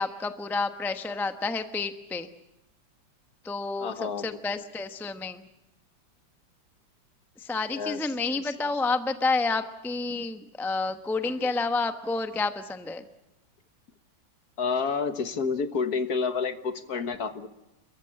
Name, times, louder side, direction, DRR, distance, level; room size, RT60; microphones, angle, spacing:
voice 1, 0.0-2.3 3.4-5.5 7.4-13.0, left 3 dB, ahead, 8 dB, 0.7 m, -29 dB
voice 2, 3.8-4.3 7.7-8.0 8.3-8.4 11.4-11.5 14.6-17.5, left 5 dB, 55° left, 9 dB, 1.7 m, -29 dB
29.5 x 14.5 x 8.7 m, 0.94 s
omnidirectional pair, 2.0 m